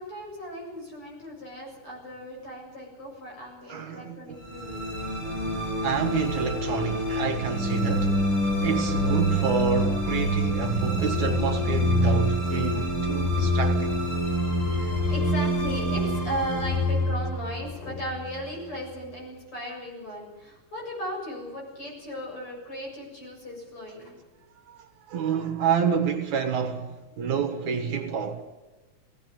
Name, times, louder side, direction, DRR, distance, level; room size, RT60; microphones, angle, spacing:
voice 1, 0.0-4.8 14.6-24.2, equal, 40° left, 8.3 m, -37 dB
voice 2, 3.7-4.4 5.8-8.2 8.6-14.1 24.7-28.5, right 7 dB, 65° right, 2.8 m, -28 dB
sound 1, 4.4-18.8, equal, 65° left, 8.6 m, -26 dB
19.5 x 17.5 x 9.2 m
omnidirectional pair, 3.7 m